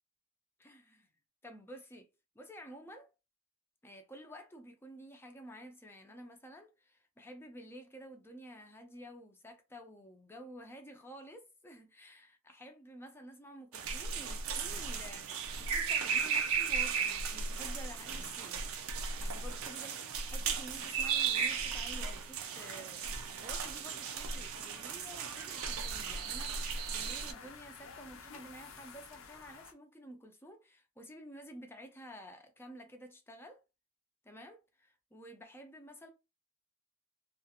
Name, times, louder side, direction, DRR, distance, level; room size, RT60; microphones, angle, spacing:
voice 1, 0.6-1.1 1.4-3.1 3.8-15.3 15.6-18.6 19.2-33.6 34.2-36.1, equal, 10° left, 0.5 m, -51 dB
sound 1, 13.7-27.3, right 6 dB, 80° right, 0.5 m, -36 dB
sound 2, 23.8-29.7, left 5 dB, 70° left, 0.6 m, -54 dB
2.4 x 2.4 x 2.8 m
head